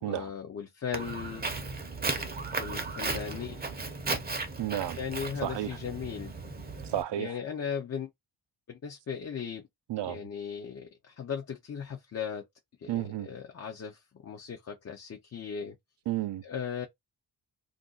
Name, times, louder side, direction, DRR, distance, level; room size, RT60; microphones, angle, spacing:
voice 1, 0.0-1.5 2.0-3.6 5.0-6.3 7.2-8.1 8.7-9.6 10.0-12.4 12.8-15.7 16.4-16.9, left 7 dB, 35° left, 0.5 m, -37 dB
Walk footsteps, 0.9-7.0, right 3 dB, 20° right, 0.6 m, -35 dB
voice 2, 4.6-5.0 5.4-5.8 6.8-7.3 9.9-10.2 12.9-13.3 16.1-16.4, right 13 dB, 70° right, 0.5 m, -32 dB
2.5 x 2.3 x 3.7 m
wide cardioid pair, 125°, 44 cm